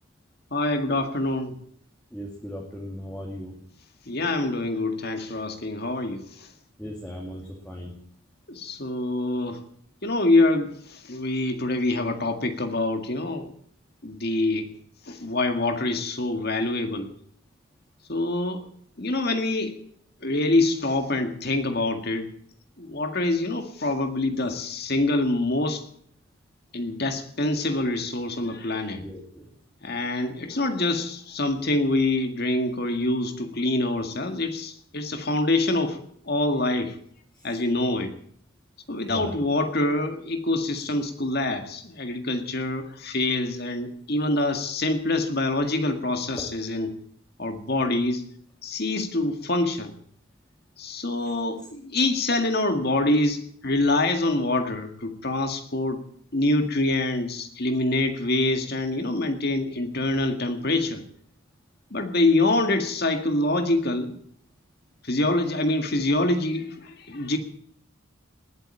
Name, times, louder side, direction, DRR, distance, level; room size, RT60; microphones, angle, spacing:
voice 1, 0.5-1.6 4.1-6.5 8.5-9.6 10.0-13.5 14.0-14.7 15.1-17.1 18.1-18.6 19.0-19.8 20.2-22.3 22.8-25.8 26.7-29.0 29.8-36.0 36.3-37.0 37.4-38.1 38.9-46.9 47.4-48.2 48.6-49.9 50.8-56.0 56.3-61.0 61.9-64.1 65.0-67.4, left 2 dB, 45° left, 7 dB, 1.9 m, -25 dB
voice 2, 2.1-3.5 6.8-7.9 28.9-29.5 39.1-39.3, equal, 5° left, -2 dB, 2.3 m, -37 dB
20.0 x 7.9 x 9.0 m, 0.64 s
head